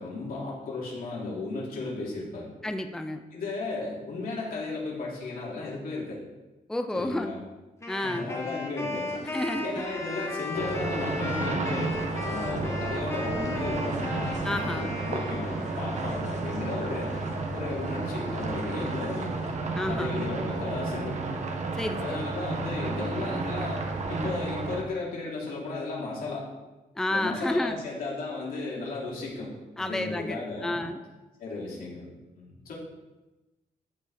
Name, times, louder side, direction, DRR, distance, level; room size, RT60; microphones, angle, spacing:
voice 1, 0.0-2.5 3.3-6.2 6.9-7.4 8.0-9.1 9.6-17.2 17.5-19.4 19.9-21.4 22.0-26.5 27.1-29.5 29.8-30.8 31.4-32.7, left 3 dB, 85° left, -4 dB, 2.8 m, -35 dB
voice 2, 2.6-3.2 6.7-7.3 7.9-8.3 9.3-9.8 14.4-14.9 19.8-20.2 21.7-22.3 27.0-27.8 29.8-31.0, left 1 dB, 5° left, 7 dB, 0.4 m, -30 dB
Wind instrument woodwind instrument, 7.8-16.0, left 2 dB, 20° left, 1.0 m, -36 dB
sound 1, 9.1-19.5, left 3 dB, 55° left, 1.5 m, -46 dB
sound 2, 10.5-24.8, right 3 dB, 55° right, 1.1 m, -32 dB
14.5 x 4.8 x 4.2 m, 1.1 s
wide cardioid pair, 160°, 15 cm